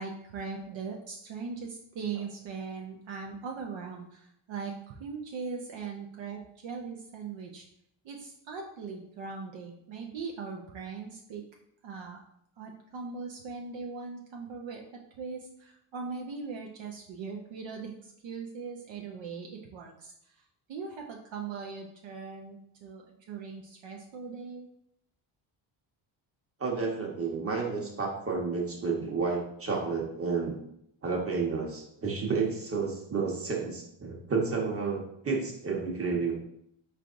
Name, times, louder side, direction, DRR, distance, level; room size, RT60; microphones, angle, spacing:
voice 1, 0.0-7.7 8.0-11.4 11.8-12.2 12.6-14.8 15.2-20.4 20.7-24.7, right 5 dB, 65° right, 1 dB, 0.7 m, -40 dB
voice 2, 26.6-30.6 31.0-36.3, right 4 dB, 25° right, -1 dB, 1.1 m, -31 dB
4.6 x 3.4 x 2.5 m, 0.75 s
cardioid pair, 85°, 50 cm